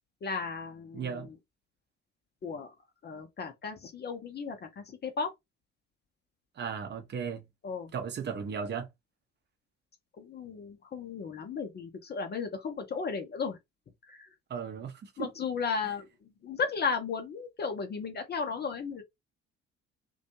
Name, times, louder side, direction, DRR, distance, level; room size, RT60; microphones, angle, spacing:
voice 1, 0.2-1.1 2.4-2.7 3.0-5.3 7.6-7.9 10.2-13.6 14.1-14.3 15.2-16.1 16.4-19.0, left 5 dB, 30° left, 0.6 m, -35 dB
voice 2, 0.9-1.3 6.6-7.4 7.9-8.9 14.5-15.3 15.8-15.9, right 6 dB, 30° right, 0.7 m, -36 dB
2.5 x 2.2 x 2.7 m
figure-of-eight pair, 50°, 34 cm